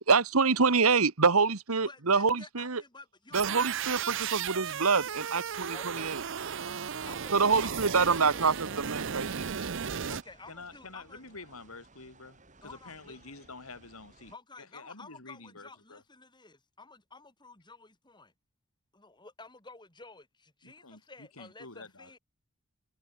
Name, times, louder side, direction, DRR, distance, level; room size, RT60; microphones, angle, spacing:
voice 1, 0.1-2.8 3.3-6.2 7.3-9.6, right 4 dB, 85° right, 1.4 m, -26 dB
voice 2, 1.8-3.8 5.7-6.1 7.1-8.9 10.1-11.2 12.6-13.2 14.3-18.3 18.9-22.2, left 3 dB, 20° left, 5.0 m, -51 dB
sound 1, 3.3-10.2, right 7 dB, 60° right, 0.7 m, -35 dB
sound 2, 4.2-14.4, right 3 dB, 35° right, 7.8 m, -59 dB
voice 3, 10.5-14.3 14.7-16.0 20.6-22.1, left 3 dB, 80° left, 5.0 m, -48 dB
head